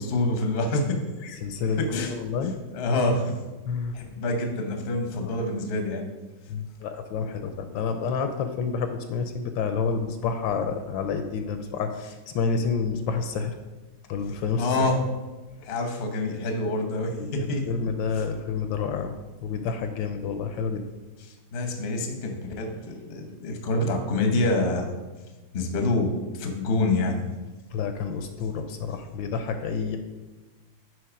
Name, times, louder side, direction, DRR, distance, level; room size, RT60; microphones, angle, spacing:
voice 1, 0.0-1.4 1.8-2.1 2.7-3.3 3.9-6.0 14.6-15.0 15.6-17.6 18.1-18.2 21.5-24.9 25.5-27.3, left 2 dB, 45° left, 3 dB, 0.8 m, -26 dB
voice 2, 1.4-2.6 3.7-3.9 5.1-5.4 6.5-13.5 14.1-14.7 17.2-19.1 19.4-20.8 27.7-30.0, left 5 dB, 75° left, 7 dB, 1.2 m, -29 dB
9.3 x 3.2 x 5.0 m, 1.2 s
omnidirectional pair, 2.2 m